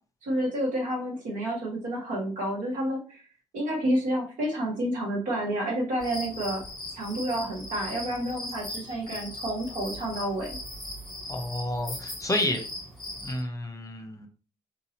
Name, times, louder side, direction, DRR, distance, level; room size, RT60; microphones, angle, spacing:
voice 1, 0.2-3.2 3.5-6.6 6.9-10.6, right 1 dB, 65° right, -2 dB, 1.6 m, -29 dB
sound 1, 6.0-13.4, left 1 dB, ahead, 1.8 m, -39 dB
voice 2, 11.3-12.6 13.2-14.3, left 1 dB, 25° left, 4 dB, 0.9 m, -30 dB
3.6 x 2.7 x 2.9 m, 0.37 s
hypercardioid pair, 50°, 14 cm